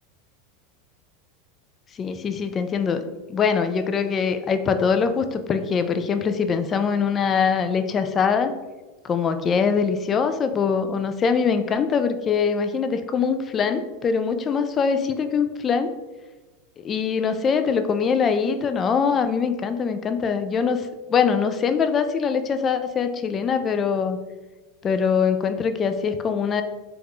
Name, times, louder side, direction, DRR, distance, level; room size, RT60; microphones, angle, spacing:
voice 1, 2.0-3.0 3.3-8.5 9.0-15.9 16.8-24.2 24.8-26.6, left 6 dB, 30° left, 9 dB, 0.3 m, -23 dB
3.5 x 2.4 x 3.1 m, 1.2 s
hypercardioid pair, 105°, 0 cm